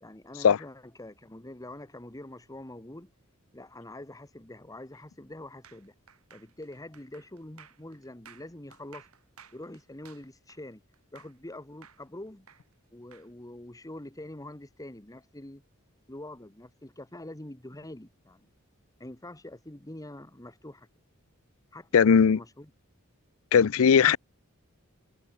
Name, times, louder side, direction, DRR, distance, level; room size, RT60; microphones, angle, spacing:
voice 1, 0.0-3.1 3.5-5.9 6.3-9.1 9.5-10.8 11.1-12.5 12.9-15.6 16.1-18.5 19.0-20.9 21.7-22.7, left 1 dB, 15° left, 1.6 m, -45 dB
hands.clapping.bright.pattern, 5.6-11.5 11.8-13.3, right 7 dB, 90° right, 6.2 m, -55 dB
voice 2, 21.9-22.4 23.5-24.2, left 7 dB, 70° left, 0.4 m, -18 dB
head